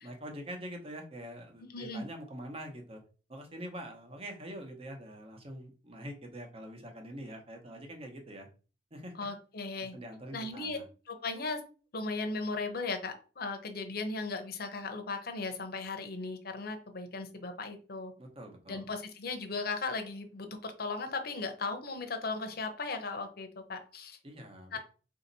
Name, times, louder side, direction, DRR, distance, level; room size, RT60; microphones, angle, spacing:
voice 1, 0.0-3.0 3.3-8.5 8.9-9.1 9.9-10.8 18.2-18.9 24.2-24.8, equal, 30° right, 3 dB, 0.9 m, -44 dB
voice 2, 1.7-2.1 9.2-9.9 10.3-10.8 11.1-11.6 11.9-18.1 18.7-24.2 24.7-24.8, left 3 dB, 55° left, 6 dB, 0.8 m, -37 dB
4.0 x 2.8 x 4.0 m, 0.36 s
head